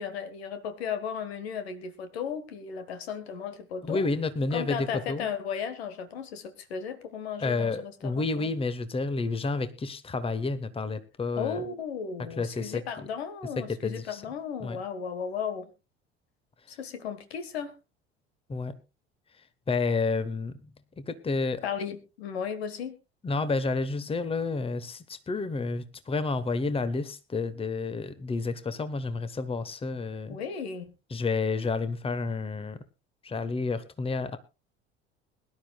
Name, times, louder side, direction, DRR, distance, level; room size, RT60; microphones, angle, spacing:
voice 1, 0.0-4.1 4.5-8.5 11.4-15.7 16.7-17.7 21.6-23.0 30.3-30.9, left 7 dB, 70° left, 11 dB, 1.6 m, -35 dB
voice 2, 3.8-5.3 7.4-11.6 12.4-12.8 13.6-14.2 14.6-14.8 18.5-18.8 19.7-20.6 21.0-21.6 23.2-30.4 31.1-32.8 33.2-34.4, left 3 dB, 15° left, 13 dB, 1.2 m, -30 dB
22.0 x 12.0 x 2.3 m, 0.28 s
figure-of-eight pair, 65°, 32 cm